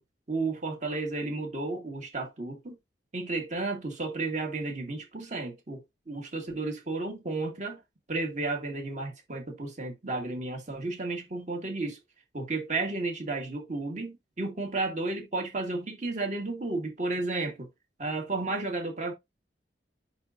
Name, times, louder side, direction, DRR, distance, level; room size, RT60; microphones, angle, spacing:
voice 1, 0.3-2.8 3.1-5.8 6.1-7.8 8.1-12.0 12.3-17.7 18.0-19.1, right 3 dB, 40° right, 2.0 m, -32 dB
10.5 x 4.0 x 2.6 m
head